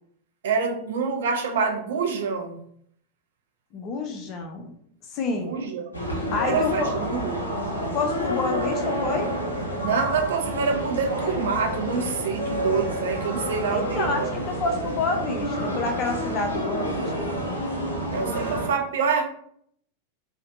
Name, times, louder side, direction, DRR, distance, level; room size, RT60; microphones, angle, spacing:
voice 1, 0.4-2.6 5.4-5.9 6.4-7.5 9.8-14.3 18.1-19.2, right 5 dB, 60° right, 3 dB, 0.4 m, -26 dB
voice 2, 3.7-4.7 5.1-5.6 6.3-6.9 7.9-9.3 13.7-17.3, left 3 dB, 35° left, 6 dB, 0.4 m, -28 dB
sound 1, 5.9-18.7, equal, 85° left, 0.6 m, -29 dB
2.6 x 2.1 x 2.5 m, 0.66 s
figure-of-eight pair, 90°, 0 cm